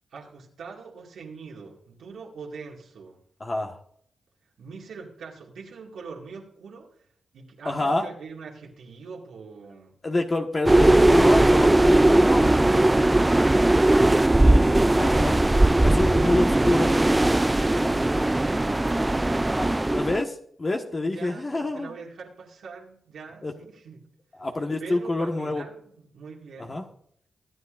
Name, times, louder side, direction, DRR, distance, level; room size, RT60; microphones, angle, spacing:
voice 1, 0.1-3.2 4.6-6.9 7.3-9.9 17.4-19.9 21.1-24.0 24.8-26.8, right 5 dB, 85° right, -2 dB, 2.2 m, -43 dB
voice 2, 3.4-3.8 7.6-8.0 10.0-12.7 14.4-15.3 15.8-16.9 17.8-17.9 19.6-21.9 23.4-23.5 24.4-25.6 26.6-26.8, left 2 dB, 35° left, 2 dB, 1.4 m, -27 dB
sound 1, 10.7-20.2, right 1 dB, 15° right, 0.3 m, -19 dB
23.5 x 9.6 x 2.6 m, 0.66 s
cardioid pair, 65°, 0 cm